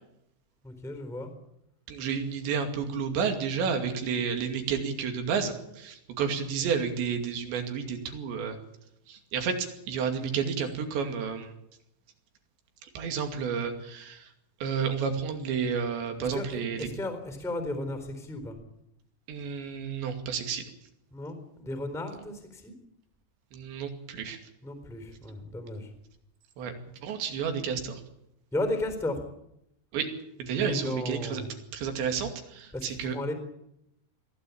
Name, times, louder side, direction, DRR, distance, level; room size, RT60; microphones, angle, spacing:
voice 1, 0.6-1.3 16.2-18.5 21.1-22.7 24.6-25.9 28.5-29.2 30.5-31.5 32.7-33.3, left 1 dB, ahead, 6 dB, 3.2 m, -34 dB
voice 2, 1.9-8.6 9.1-11.5 13.0-14.3 14.6-16.9 19.3-20.6 23.5-24.4 26.6-26.7 27.0-28.0 29.9-30.1 30.4-31.4 31.7-33.1, right 6 dB, 70° right, 5 dB, 4.6 m, -31 dB
23.0 x 15.5 x 8.6 m, 0.80 s
omnidirectional pair, 5.4 m